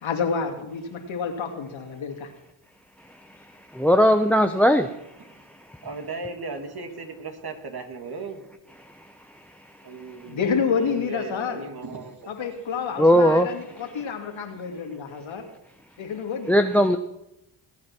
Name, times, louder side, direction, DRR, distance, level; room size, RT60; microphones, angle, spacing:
voice 1, 0.0-2.3 10.3-11.6 12.3-15.5 16.0-16.5, left 6 dB, 70° left, 4 dB, 2.6 m, -29 dB
voice 2, 3.7-4.9 13.0-13.5 16.5-17.0, equal, 5° left, 7 dB, 0.9 m, -18 dB
voice 3, 5.8-8.4 9.8-10.4 10.7-12.3, right 3 dB, 50° right, 5 dB, 2.8 m, -36 dB
20.5 x 8.7 x 6.2 m, 0.88 s
cardioid pair, 60°, 48 cm